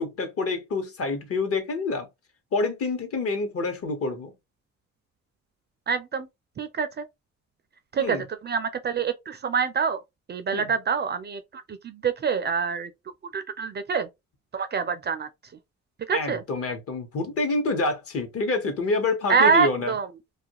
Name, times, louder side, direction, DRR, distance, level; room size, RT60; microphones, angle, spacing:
voice 1, 0.0-2.1 2.5-4.3 8.0-8.2 10.5-10.7 16.1-19.9, left 3 dB, 50° left, 0.9 m, -27 dB
voice 2, 5.9-6.3 6.6-7.0 7.9-10.0 10.3-12.9 13.3-14.1 14.5-15.3 16.1-16.4 19.3-20.1, right 6 dB, 35° right, 0.4 m, -26 dB
2.4 x 2.2 x 2.8 m
cardioid pair, 90°, 30 cm